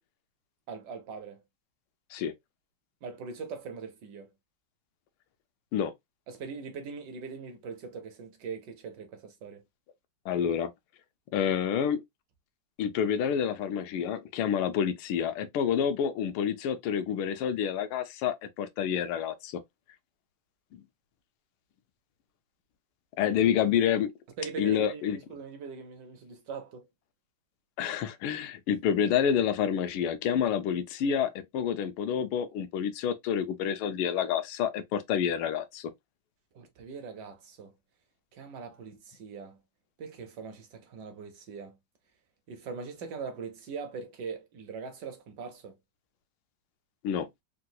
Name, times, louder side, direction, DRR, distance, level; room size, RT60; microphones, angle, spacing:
voice 1, 0.7-1.4 3.0-4.3 6.3-9.6 24.4-26.9 36.5-37.7 38.3-39.6 40.0-41.8 42.5-45.8, right 5 dB, 70° right, 1.0 m, -41 dB
voice 2, 10.3-10.7 11.3-12.0 12.8-19.6 20.7-20.8 23.2-24.1 24.6-25.2 27.8-35.9 47.0-47.3, left 8 dB, 85° left, 1.4 m, -28 dB
3.8 x 2.2 x 2.6 m
omnidirectional pair, 2.3 m